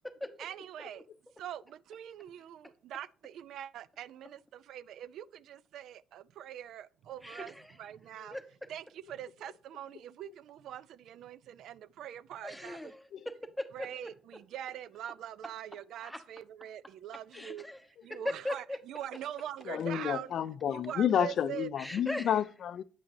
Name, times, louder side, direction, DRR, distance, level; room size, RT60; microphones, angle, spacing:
voice 1, 0.4-1.0 1.4-7.5 7.8-8.4 8.7-12.8 13.7-17.7 18.0-20.3 20.7-21.7, right 11 dB, 80° right, 0.3 m, -43 dB
voice 2, 7.2-7.8 8.3-8.4 12.4-14.1 16.0-16.2 17.3-18.8 21.8-22.4, left 1 dB, 5° left, 1.0 m, -40 dB
voice 3, 19.7-22.8, left 9 dB, 65° left, 0.4 m, -30 dB
8.4 x 5.8 x 2.7 m
cardioid pair, 90°, 0 cm